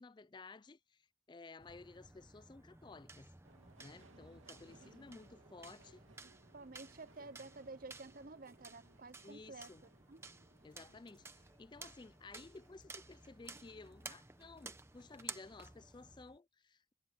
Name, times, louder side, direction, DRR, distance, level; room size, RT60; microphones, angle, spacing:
voice 1, 0.0-3.3 3.8-6.0 9.2-9.9 10.6-16.9, left 3 dB, 20° left, 0.4 m, -55 dB
sound 1, 1.6-16.4, right 3 dB, 15° right, 0.9 m, -55 dB
Subway metro underground, 3.4-14.2 14.5-15.2 15.5-15.6, right 2 dB, 85° right, 2.7 m, -67 dB
Musical instrument, 6.1-14.6, left 2 dB, 60° left, 7.4 m, -79 dB
voice 2, 6.5-9.7 10.1-10.2, right 3 dB, 45° right, 0.6 m, -52 dB
head